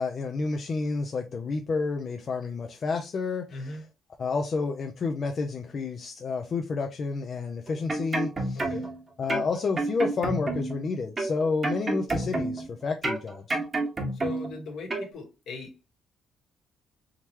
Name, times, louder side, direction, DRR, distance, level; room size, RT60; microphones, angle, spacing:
voice 1, 0.0-3.7 4.2-8.6 9.2-13.6, left 4 dB, 50° left, 0.5 m, -30 dB
voice 2, 3.5-3.8 8.5-8.9 14.1-15.7, left 3 dB, 75° left, 1.4 m, -38 dB
sound 1, 7.7-9.0 9.3-10.8 11.2-12.7 13.0-14.6 14.9-15.1, right 2 dB, 35° right, 1.2 m, -29 dB
3.6 x 3.1 x 2.9 m
cardioid pair, 90°, 0 cm